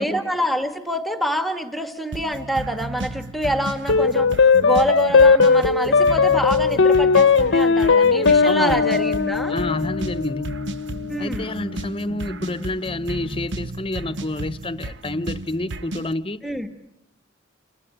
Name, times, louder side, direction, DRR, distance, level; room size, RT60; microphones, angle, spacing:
voice 1, 0.0-9.5 11.1-11.5 16.4-16.7, equal, ahead, 1.5 m, -26 dB
sound 1, 2.1-16.1, right 2 dB, 70° right, 0.9 m, -33 dB
sound 2, 3.9-12.5, left 5 dB, 85° left, 0.9 m, -18 dB
voice 2, 8.4-8.8 9.5-10.6 11.2-16.7, left 2 dB, 30° left, 0.9 m, -29 dB
29.0 x 19.5 x 9.0 m
head